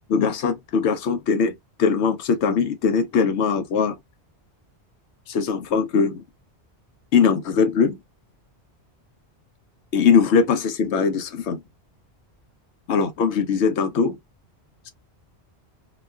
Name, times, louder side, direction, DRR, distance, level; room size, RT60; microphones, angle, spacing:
voice 1, 0.1-4.0 5.3-6.2 7.1-8.0 9.9-11.6 12.9-14.2, left 5 dB, 80° left, 0.9 m, -21 dB
3.0 x 2.2 x 2.2 m
omnidirectional pair, 1.1 m